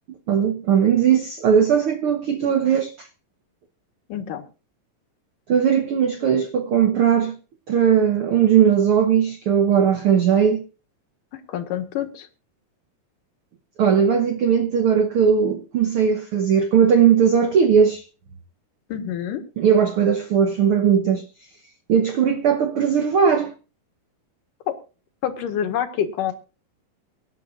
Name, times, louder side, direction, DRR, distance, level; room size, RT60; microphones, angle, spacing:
voice 1, 0.3-3.1 5.5-7.3 7.7-10.6 13.8-18.0 19.6-21.2 21.9-23.5, right 7 dB, 85° right, 1.2 m, -18 dB
voice 2, 4.1-4.4 11.3-12.3 18.9-19.4 24.7-24.8 25.2-26.3, left 9 dB, 75° left, 3.0 m, -27 dB
24.0 x 10.5 x 2.5 m
omnidirectional pair, 3.9 m